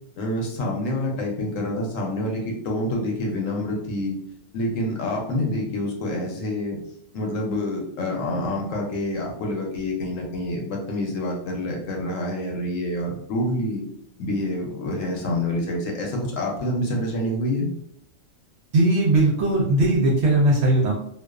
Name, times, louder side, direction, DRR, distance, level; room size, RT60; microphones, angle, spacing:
voice 1, 0.2-4.2 4.5-6.8 7.1-13.8 14.2-17.7, left 1 dB, 70° left, 0 dB, 0.9 m, -27 dB
voice 2, 18.7-20.9, right 2 dB, 65° right, -3 dB, 0.7 m, -19 dB
2.4 x 2.3 x 2.3 m, 0.70 s
omnidirectional pair, 1.5 m